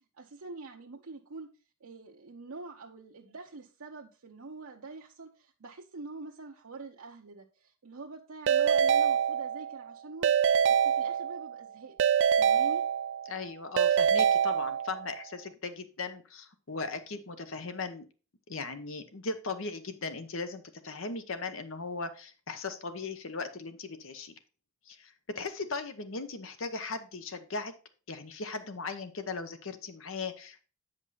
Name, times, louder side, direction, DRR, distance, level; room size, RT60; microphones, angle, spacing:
voice 1, 0.0-1.5 1.8-10.4 10.7-12.0 12.3-12.8, right 3 dB, 80° right, -1 dB, 0.8 m, -45 dB
Keyboard (musical) / Ringtone, 8.5-9.8 10.2-11.6 12.0-13.3 13.8-15.1, right 8 dB, 55° right, 0.3 m, -25 dB
voice 2, 13.3-18.1 18.5-24.3 24.9-27.7 28.1-30.6, left 3 dB, 65° left, 9 dB, 0.9 m, -38 dB
8.3 x 5.4 x 4.1 m, 0.35 s
head